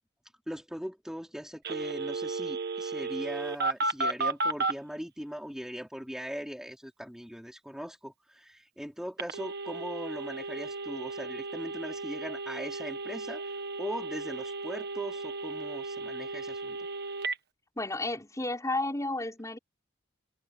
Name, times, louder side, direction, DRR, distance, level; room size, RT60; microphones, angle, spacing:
voice 1, 0.5-16.9, equal, 5° right, 3.0 m, -40 dB
Telephone, 1.6-4.8 9.2-17.4, right 3 dB, 55° right, 1.6 m, -34 dB
voice 2, 17.8-19.6, left 2 dB, 15° left, 4.9 m, -32 dB
head